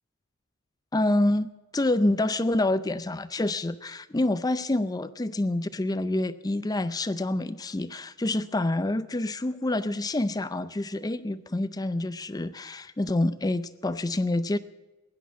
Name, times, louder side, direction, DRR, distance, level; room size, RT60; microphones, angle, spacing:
voice 1, 0.9-14.6, left 1 dB, 20° left, 14 dB, 0.5 m, -27 dB
16.5 x 11.0 x 7.3 m, 1.1 s
head